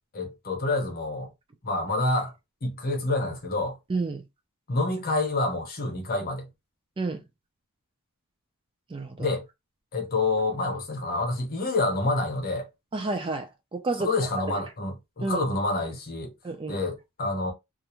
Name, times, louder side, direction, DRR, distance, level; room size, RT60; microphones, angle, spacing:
voice 1, 0.1-1.3 1.6-2.3 2.6-3.8 4.7-6.5 9.2-9.4 9.9-12.7 14.0-16.3 16.7-17.5, left 2 dB, 45° left, 0.8 m, -27 dB
voice 2, 3.9-4.2 7.0-7.2 8.9-9.3 12.9-14.1 14.5-14.6 15.2-15.5 16.4-16.8, right 3 dB, 25° right, 0.4 m, -30 dB
2.4 x 2.1 x 2.9 m
head